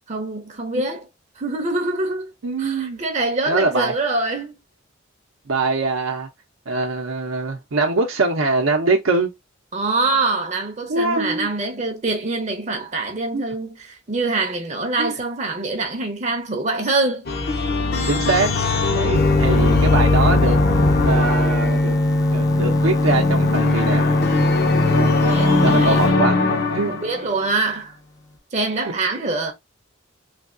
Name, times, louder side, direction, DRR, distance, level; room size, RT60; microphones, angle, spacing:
voice 1, 0.1-1.1 1.4-2.3 2.6-4.6 9.7-17.2 19.3-19.8 25.2-26.0 27.0-28.0 28.5-29.5, right 3 dB, 35° right, 0.6 m, -24 dB
voice 2, 2.4-3.0 3.5-3.9 5.5-6.3 6.7-9.3 10.9-11.5 13.3-13.5 15.0-15.1 18.1-18.5 18.9-20.6 21.0-22.0 22.3-24.1 25.6-26.4 26.7-26.9, right 3 dB, 85° right, 0.6 m, -22 dB
sound 1, 17.3-27.3, left 3 dB, 50° left, 0.6 m, -21 dB
sound 2, 19.1-26.2, left 1 dB, 20° left, 0.3 m, -20 dB
3.3 x 2.3 x 2.4 m
head